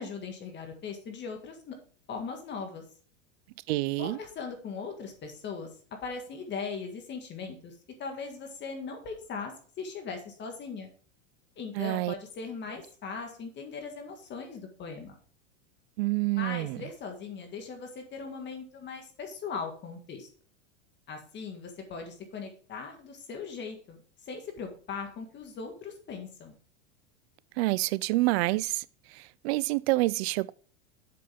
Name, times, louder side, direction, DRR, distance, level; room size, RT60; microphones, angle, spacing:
voice 1, 0.0-1.8 2.1-2.8 4.0-5.7 6.0-10.9 11.6-15.2 16.4-20.3 21.1-26.6, left 5 dB, 30° left, 1.8 m, -39 dB
voice 2, 3.7-4.2 11.7-12.1 16.0-16.9 27.6-30.5, right 20 dB, 55° right, 0.5 m, -28 dB
7.6 x 6.6 x 3.5 m
supercardioid pair, 135°, 38 cm